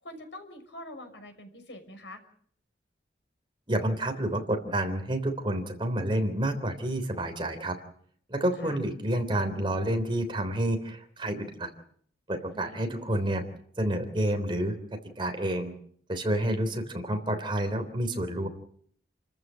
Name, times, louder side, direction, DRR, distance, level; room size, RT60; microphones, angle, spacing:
voice 1, 0.0-2.2 8.6-8.8 12.5-13.1, left 1 dB, 75° left, 6 dB, 6.0 m, -45 dB
voice 2, 3.7-7.8 8.3-11.7 12.3-13.4 13.8-14.8 15.2-15.7 16.1-18.5, right 1 dB, 25° right, 6 dB, 3.5 m, -29 dB
29.5 x 14.5 x 9.1 m, 0.63 s
head